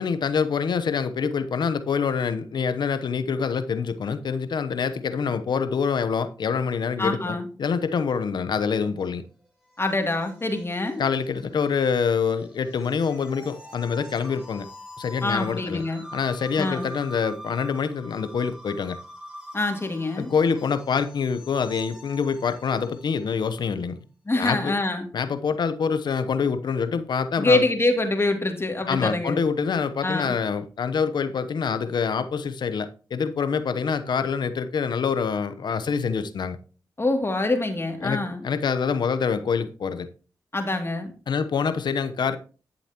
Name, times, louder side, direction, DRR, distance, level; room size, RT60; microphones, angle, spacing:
voice 1, 0.0-9.2 11.0-14.7 15.0-15.8 16.1-19.0 20.2-24.0 24.4-24.7 25.1-27.7 28.9-36.6 38.0-40.1 41.3-42.4, left 6 dB, 70° left, 0.9 m, -26 dB
voice 2, 7.0-7.5 9.8-11.0 15.2-16.0 16.6-16.9 19.5-20.3 24.3-25.1 27.4-29.4 30.0-30.3 37.0-38.5 40.5-41.1, left 2 dB, 30° left, 2.6 m, -25 dB
sound 1, 9.0-23.6, equal, 10° right, 4.8 m, -45 dB
11.5 x 7.1 x 3.0 m
supercardioid pair, 40°, 8 cm